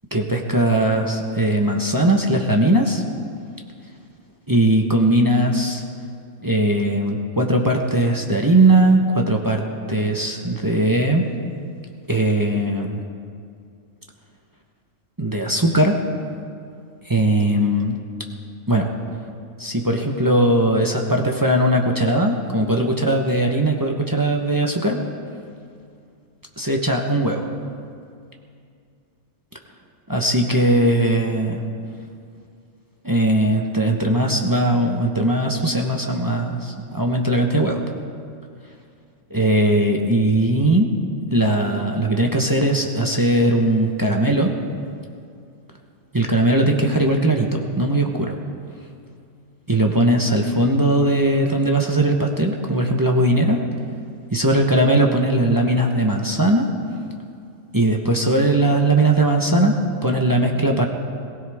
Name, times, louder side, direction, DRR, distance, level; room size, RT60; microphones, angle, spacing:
voice 1, 0.1-3.0 4.5-5.8 6.4-11.3 12.1-13.0 15.2-16.0 17.1-18.0 18.7-18.9 19.6-25.0 26.6-27.5 30.1-31.6 33.0-37.8 39.3-40.9 41.3-44.5 46.1-48.4 49.7-53.6 54.3-56.7 57.7-60.9, right 1 dB, 20° right, 1 dB, 1.0 m, -19 dB
22.0 x 16.0 x 3.6 m, 2.4 s
omnidirectional pair, 1.3 m